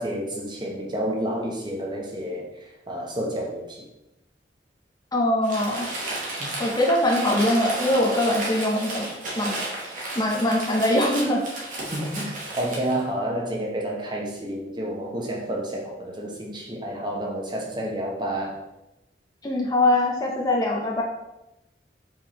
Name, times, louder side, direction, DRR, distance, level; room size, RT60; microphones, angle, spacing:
voice 1, 0.0-3.9 6.4-6.6 11.9-18.6, right 1 dB, 25° right, -1 dB, 0.8 m, -30 dB
voice 2, 5.1-5.9 6.6-9.1 9.4-9.6 10.2-11.4 19.4-21.0, left 1 dB, 20° left, -2 dB, 0.6 m, -22 dB
Crumpling crinkling, 5.4-13.0, right 2 dB, 45° right, 1.1 m, -33 dB
4.8 x 3.5 x 3.0 m, 0.92 s
head